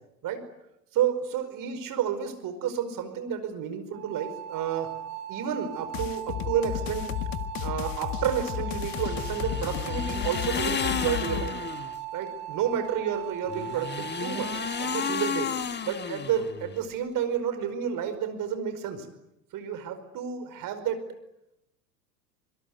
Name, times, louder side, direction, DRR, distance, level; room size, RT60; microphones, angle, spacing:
voice 1, 0.9-4.9 5.3-7.1 7.6-11.5 12.1-15.5 15.8-19.1 19.5-21.0, right 8 dB, 40° right, 10 dB, 5.2 m, -30 dB
sound 1, 3.9-15.2, right 12 dB, 65° right, 5.3 m, -38 dB
sound 2, 5.9-11.5, left 12 dB, 45° left, 1.8 m, -33 dB
sound 3, 8.8-12.0 13.4-16.8, left 7 dB, 20° left, 1.8 m, -33 dB
25.5 x 22.0 x 9.5 m, 0.88 s
hypercardioid pair, 85°, 47 cm